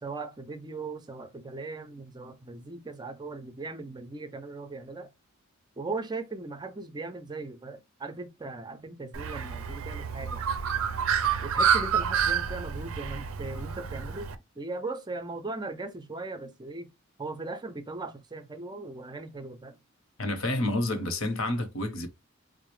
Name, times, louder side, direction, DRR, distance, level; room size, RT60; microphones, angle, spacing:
voice 1, 0.0-5.1 5.8-10.4 11.4-14.3 14.6-16.9 17.2-19.8, right 3 dB, 20° right, 0.4 m, -38 dB
Bird, 9.1-14.3, right 7 dB, 70° right, 0.5 m, -28 dB
voice 2, 20.2-22.1, left 1 dB, 65° left, 0.9 m, -29 dB
4.6 x 2.0 x 3.1 m
head